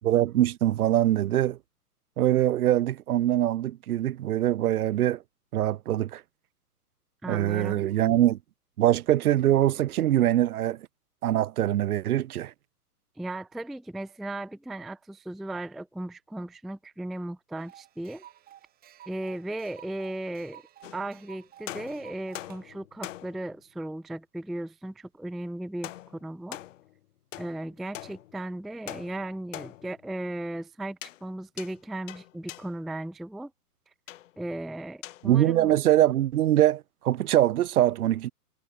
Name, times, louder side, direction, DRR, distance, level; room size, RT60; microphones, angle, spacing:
voice 1, 0.0-1.6 2.2-5.2 5.5-6.2 7.3-8.4 8.8-10.9 11.2-12.5 35.2-38.3, right 13 dB, 65° right, 0.7 m, -23 dB
voice 2, 7.2-7.8 13.2-18.2 19.1-20.6 20.9-26.6 27.4-33.5 34.4-35.7, right 1 dB, ahead, 0.5 m, -36 dB
sound 1, 17.6-22.6, right 12 dB, 20° right, 2.5 m, -53 dB
sound 2, 20.8-21.3 21.7-23.6 25.8-27.0 27.3-28.6 28.9-30.1 31.0-31.3 31.6-32.8 34.1-34.4 35.0-35.3, left 13 dB, 50° left, 2.2 m, -43 dB
hypercardioid pair, 130°, 47 cm